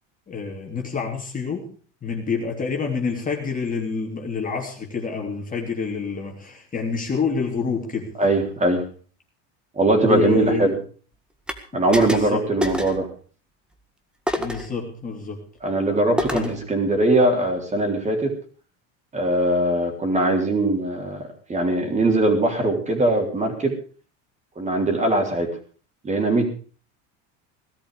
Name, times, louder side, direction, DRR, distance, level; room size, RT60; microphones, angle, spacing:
voice 1, 0.3-1.7 2.0-8.2 10.0-10.8 11.7-12.5 12.7-12.9 14.4-15.4 16.3-16.6, left 5 dB, 20° left, 1 dB, 3.2 m, -27 dB
voice 2, 8.2-8.8 9.8-10.7 11.7-13.1 15.6-18.3 19.1-23.7 24.6-25.5 26.0-26.5, right 2 dB, 20° right, 3 dB, 4.0 m, -21 dB
sound 1, 11.5-11.6 11.9-12.3 12.6-13.0 14.3-14.7 16.2-16.6, equal, ahead, 1.7 m, -27 dB
18.0 x 12.5 x 5.0 m, 0.41 s
supercardioid pair, 130°, 36 cm